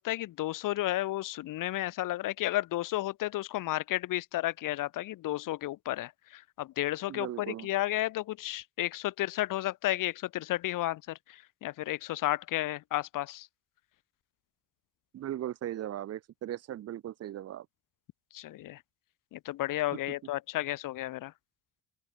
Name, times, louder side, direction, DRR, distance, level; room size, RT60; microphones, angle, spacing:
voice 1, 0.0-13.5 18.3-18.8 19.3-21.3, left 15 dB, 70° left, 2.5 m, -32 dB
voice 2, 7.1-7.7 15.1-17.7, right 12 dB, 50° right, 1.0 m, -38 dB
open air
cardioid pair, 155°, 33 cm